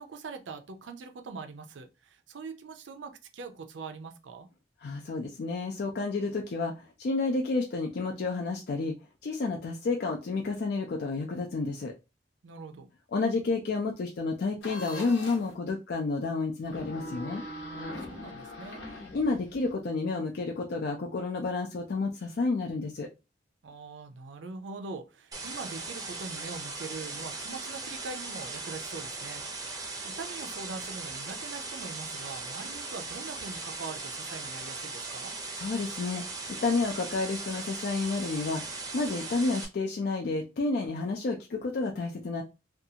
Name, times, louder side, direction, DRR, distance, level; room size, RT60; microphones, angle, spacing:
voice 1, 0.0-4.5 12.4-12.9 17.8-18.9 23.6-35.3, right 4 dB, 90° right, 0.5 m, -42 dB
voice 2, 4.8-8.9 9.2-11.9 13.1-17.4 19.1-23.1 35.6-36.2 36.6-42.4, left 3 dB, 60° left, 0.4 m, -30 dB
sound 1, 14.6-15.5 16.6-19.7, left 1 dB, 80° left, 0.8 m, -41 dB
sound 2, 25.3-39.7, right 3 dB, 20° right, 0.5 m, -38 dB
2.6 x 2.3 x 2.7 m
head